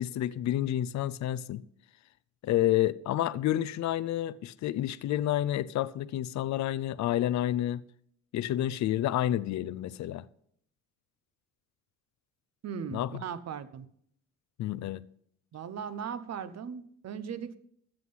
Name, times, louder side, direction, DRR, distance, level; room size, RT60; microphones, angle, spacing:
voice 1, 0.0-1.6 2.4-7.8 8.3-10.3 12.9-13.1 14.6-15.0, left 13 dB, 65° left, 0.6 m, -29 dB
voice 2, 12.6-13.9 15.5-17.6, right 7 dB, 60° right, 1.0 m, -38 dB
14.0 x 7.8 x 5.6 m
cardioid pair, 90°, 30 cm